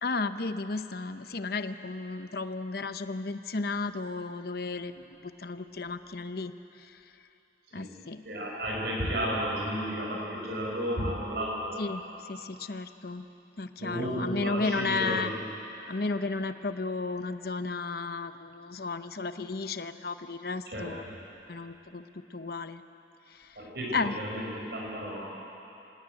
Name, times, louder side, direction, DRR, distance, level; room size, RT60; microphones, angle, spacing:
voice 1, 0.0-6.5 6.8-7.0 7.7-8.2 11.8-12.0 12.3-13.3 13.6-15.3 15.9-21.0 21.5-22.8 23.3-23.6 23.9-24.2, left 3 dB, 55° left, 10 dB, 0.8 m, -33 dB
voice 2, 8.2-11.8 13.8-15.3 20.7-20.9 23.5-25.3, equal, 60° right, -3 dB, 5.2 m, -33 dB
26.5 x 17.5 x 9.1 m, 3.0 s
head